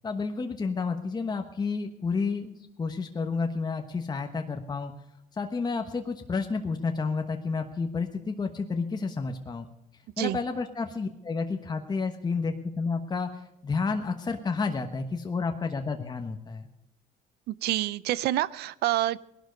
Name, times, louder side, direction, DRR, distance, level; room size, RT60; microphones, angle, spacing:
voice 1, 0.0-4.9 5.4-9.7 10.2-13.3 13.6-16.7, left 4 dB, 25° left, 5 dB, 1.2 m, -30 dB
voice 2, 17.5-19.2, right 14 dB, 75° right, 20 dB, 0.5 m, -27 dB
18.5 x 12.0 x 5.3 m, 0.86 s
cardioid pair, 110°, 17 cm